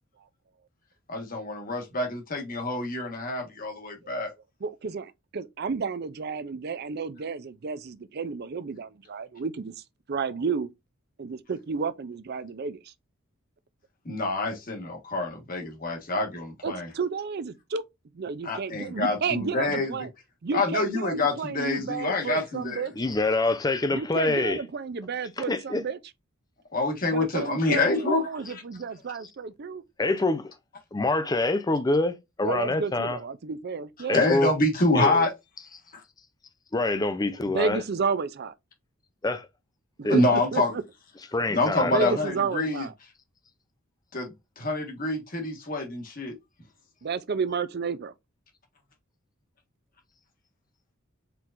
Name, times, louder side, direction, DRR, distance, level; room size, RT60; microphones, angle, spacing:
voice 1, 1.1-4.3 14.0-16.9 18.4-19.9 20.5-22.8 26.7-28.2 28.5-28.6 34.1-35.3 35.9-36.0 40.1-40.7 41.5-42.8 44.1-46.3, left 2 dB, 45° left, 1.4 m, -26 dB
voice 2, 4.6-9.8 10.1-10.7 11.2-12.9 16.6-17.8 18.1-20.1 20.4-22.9 23.9-26.0 27.1-29.8 32.4-34.2 37.4-38.5 40.0-40.8 41.8-42.9 47.0-48.1, right 5 dB, 50° right, 0.5 m, -31 dB
voice 3, 23.0-24.7 25.4-25.8 30.0-30.5 30.9-33.2 34.1-34.6 34.9-35.3 36.7-37.9 39.2-39.4 40.0-40.2 41.2-42.2, left 2 dB, 20° left, 0.5 m, -26 dB
4.5 x 3.7 x 2.5 m
head